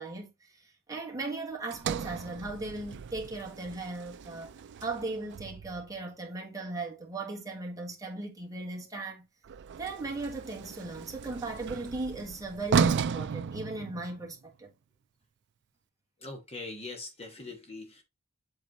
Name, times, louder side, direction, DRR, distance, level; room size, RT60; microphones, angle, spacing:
voice 1, 0.0-4.5 4.8-9.3 9.8-14.7, right 2 dB, 15° right, 1.6 m, -37 dB
Sliding door, 1.7-6.0 9.4-14.4, right 6 dB, 55° right, 0.4 m, -34 dB
voice 2, 16.2-18.0, left 3 dB, 30° left, 1.3 m, -42 dB
7.9 x 3.2 x 3.9 m
head